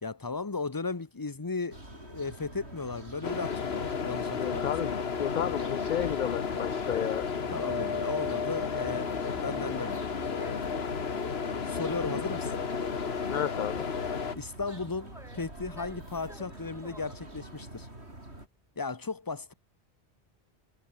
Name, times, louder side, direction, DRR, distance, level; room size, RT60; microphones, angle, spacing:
voice 1, 0.0-4.9 7.5-10.0 11.6-12.5 14.3-17.9 18.8-19.5, left 4 dB, 20° left, 1.0 m, -36 dB
sound 1, 1.7-18.5, right 1 dB, 85° right, 7.0 m, -46 dB
sound 2, 3.2-14.3, left 5 dB, 70° left, 1.7 m, -32 dB
voice 2, 4.4-7.3 13.3-13.9, left 10 dB, 55° left, 0.6 m, -32 dB
Conversation, 8.4-18.9, equal, 5° right, 3.3 m, -55 dB
omnidirectional pair, 1.1 m